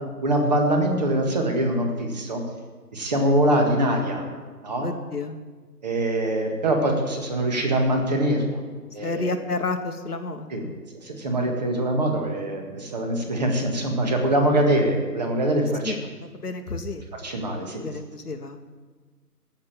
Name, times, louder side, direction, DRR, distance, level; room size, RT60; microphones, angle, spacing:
voice 1, 0.2-2.4 2.9-4.2 4.6-4.9 5.8-8.6 8.9-9.3 10.5-10.7 11.0-15.9 17.2-17.8, right 1 dB, 25° right, 3 dB, 1.8 m, -23 dB
voice 2, 4.8-5.4 9.0-10.8 15.8-16.0 16.3-17.0 17.6-18.6, left 3 dB, 65° left, 6 dB, 1.5 m, -31 dB
16.0 x 6.7 x 8.8 m, 1.4 s
figure-of-eight pair, 150°, 49 cm